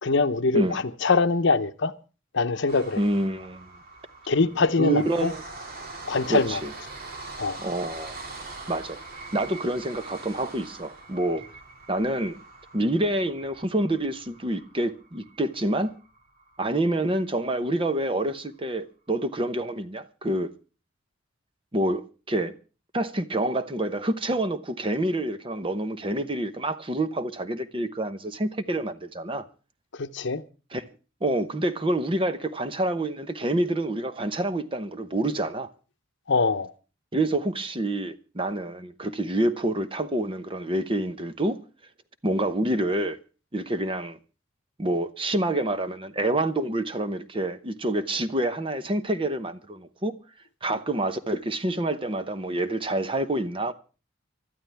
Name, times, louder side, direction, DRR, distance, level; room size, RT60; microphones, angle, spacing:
voice 1, 0.0-1.9 2.3-3.0 4.3-5.3 6.1-6.6 7.4-7.6 30.0-30.4 36.3-36.7, left 4 dB, 65° left, 0.8 m, -23 dB
sound 1, 2.7-16.8 17.2-17.3 17.6-17.7, right 3 dB, 50° right, 2.4 m, -43 dB
voice 2, 2.9-3.7 4.8-5.4 6.3-6.7 7.6-8.2 8.7-9.0 9.3-11.4 11.9-12.4 12.7-15.9 16.6-20.5 21.7-22.5 22.9-29.4 30.7-30.8 31.2-35.7 37.1-41.6 42.2-43.2 43.5-44.2 44.8-50.1 50.6-53.7, right 1 dB, 25° right, 0.9 m, -27 dB
24.5 x 12.5 x 3.5 m
head